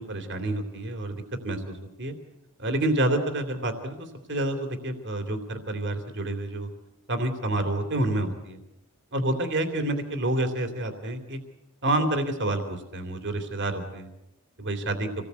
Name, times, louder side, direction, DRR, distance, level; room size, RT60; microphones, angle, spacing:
voice 1, 0.0-2.1 2.6-6.7 7.1-8.6 9.1-11.4 11.8-14.1 14.6-15.1, right 1 dB, 55° right, 6 dB, 3.0 m, -28 dB
27.0 x 19.5 x 8.2 m, 0.93 s
head